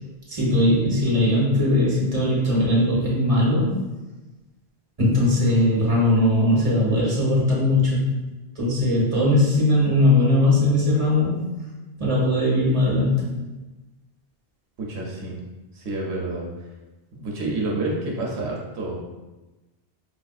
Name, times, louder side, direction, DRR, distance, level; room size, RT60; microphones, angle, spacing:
voice 1, 0.3-3.7 5.0-8.0 8.6-11.4 12.0-13.3, left 1 dB, 35° right, -6 dB, 1.1 m, -19 dB
voice 2, 14.8-15.4 15.7-16.5 17.1-19.0, right 2 dB, 85° right, -3 dB, 0.9 m, -28 dB
4.5 x 2.5 x 2.3 m, 1.1 s
omnidirectional pair, 1.1 m